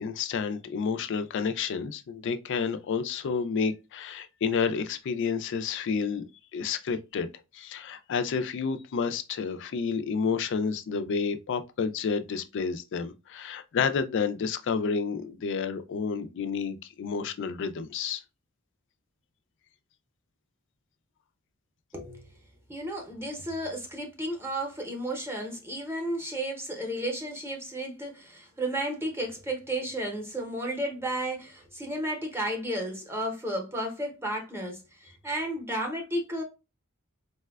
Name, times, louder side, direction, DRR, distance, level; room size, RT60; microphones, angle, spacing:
voice 1, 0.0-6.2 6.5-7.3 7.5-18.2, left 5 dB, 60° left, 0.4 m, -30 dB
voice 2, 21.9-22.3 22.7-36.4, right 1 dB, 10° right, 0.7 m, -33 dB
4.0 x 2.1 x 2.2 m
head